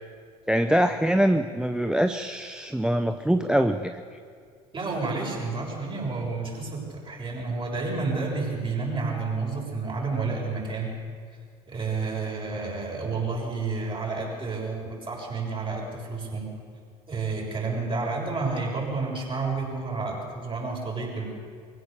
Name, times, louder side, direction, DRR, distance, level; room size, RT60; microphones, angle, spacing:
voice 1, 0.5-4.0, right 1 dB, 5° right, 9 dB, 0.7 m, -23 dB
voice 2, 4.7-10.9 11.7-16.5 17.1-21.3, right 4 dB, 25° right, -2 dB, 6.9 m, -30 dB
22.5 x 16.5 x 7.1 m, 2.1 s
hypercardioid pair, 70°, 19 cm